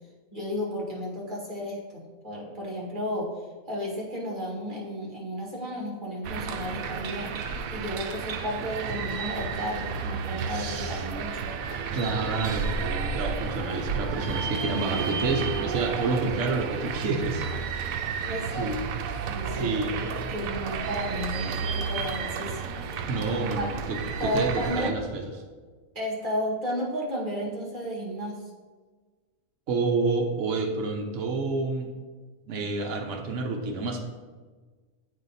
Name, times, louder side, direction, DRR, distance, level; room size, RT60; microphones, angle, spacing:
voice 1, 0.3-3.3 3.7-11.6 18.2-18.7 19.3-23.1 23.4-23.7 24.2-24.9 25.9-28.4, equal, 35° right, -4 dB, 2.1 m, -33 dB
sound 1, 6.2-24.9, right 6 dB, 85° right, 1.0 m, -32 dB
voice 2, 10.5-11.0 11.9-17.4 17.8-18.1 18.6-18.8 19.5-19.9 23.1-25.3 29.7-31.9 32.5-34.0, right 3 dB, 65° right, 1 dB, 1.1 m, -29 dB
8.3 x 4.5 x 4.1 m, 1.4 s
omnidirectional pair, 1.4 m